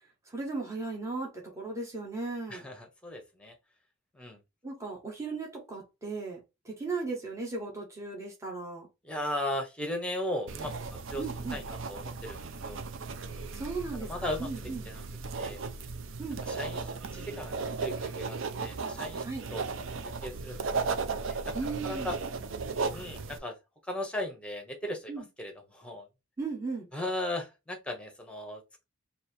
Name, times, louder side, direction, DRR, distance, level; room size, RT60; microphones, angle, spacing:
voice 1, 0.3-2.6 4.6-6.4 6.6-8.9 11.2-11.6 13.5-14.9 16.2-16.4 19.2-19.5 21.5-22.2 25.1-25.2 26.4-26.9, right 3 dB, 15° right, 1.4 m, -36 dB
voice 2, 2.5-3.5 4.1-4.4 9.0-10.7 11.1-11.2 11.5-12.8 13.2-13.5 14.0-14.5 14.9-15.0 15.4-15.6 16.4-16.8 17.1-19.2 19.5-19.6 20.2-20.7 20.9-21.5 21.8-22.1 22.9-23.6 23.9-26.1 26.9-28.8, left 1 dB, 5° left, 1.0 m, -37 dB
sound 1, 10.5-23.4, right 4 dB, 60° right, 0.5 m, -36 dB
3.2 x 2.9 x 4.3 m
head